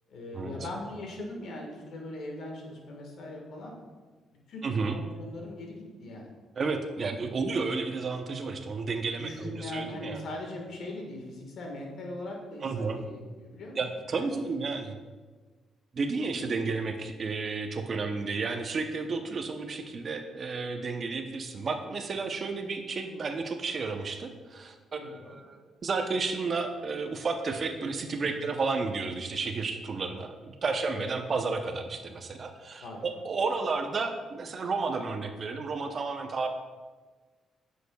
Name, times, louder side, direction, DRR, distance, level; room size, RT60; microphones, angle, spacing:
voice 1, 0.1-3.8 4.5-6.3 7.2-7.3 9.2-13.8 14.1-14.4 25.0-25.4 28.2-28.4 30.9-31.1 32.8-33.0, left 2 dB, 70° left, 1 dB, 1.5 m, -40 dB
voice 2, 4.6-5.0 6.6-10.2 12.6-13.0 13.7-15.0 15.9-36.5, right 4 dB, 45° right, 6 dB, 0.7 m, -32 dB
8.0 x 6.3 x 2.3 m, 1.4 s
cardioid pair, 90°, 0 cm